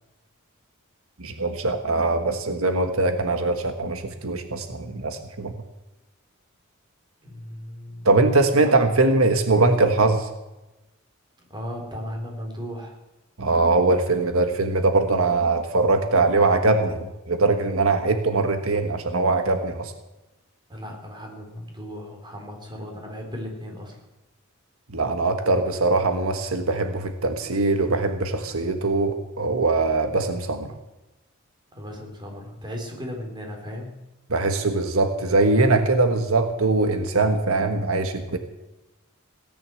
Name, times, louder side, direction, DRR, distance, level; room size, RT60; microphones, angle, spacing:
voice 1, 1.2-5.5 8.0-10.3 13.4-19.9 24.9-30.7 34.3-38.4, right 3 dB, 85° right, 6 dB, 1.5 m, -22 dB
voice 2, 7.2-8.1 11.5-13.0 20.7-23.9 31.7-33.9, equal, 20° right, 2 dB, 3.8 m, -36 dB
17.5 x 10.5 x 7.7 m, 1.0 s
head